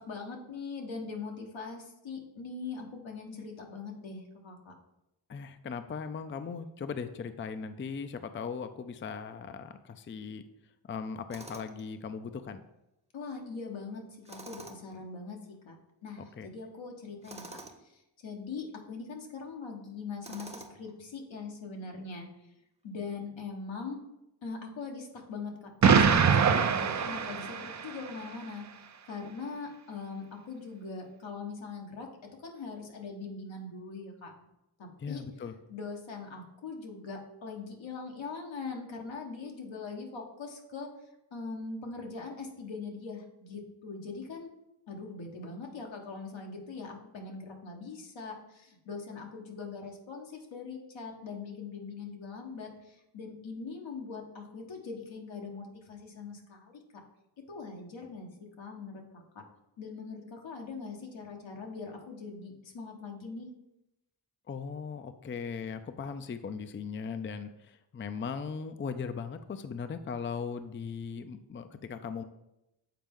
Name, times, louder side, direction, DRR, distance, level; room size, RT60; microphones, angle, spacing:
voice 1, 0.0-4.7 13.1-22.3 22.8-24.0 24.4-28.7 29.1-32.1 32.4-34.3 34.8-40.9 41.3-44.5 44.9-56.8 57.5-58.3 58.6-59.2 59.8-63.5, left 4 dB, 80° left, 1 dB, 1.3 m, -42 dB
voice 2, 5.3-10.4 10.9-12.6 16.4-16.5 35.0-35.5 64.5-72.2, left 5 dB, 30° left, 9 dB, 0.4 m, -38 dB
Tools, 11.3-11.9 14.2-15.0 17.2-17.8 20.2-20.9, right 2 dB, 15° right, 0.8 m, -47 dB
Explosion, 25.8-28.0, right 6 dB, 40° right, 0.5 m, -23 dB
7.5 x 4.3 x 3.6 m, 0.89 s
cardioid pair, 70°, 45 cm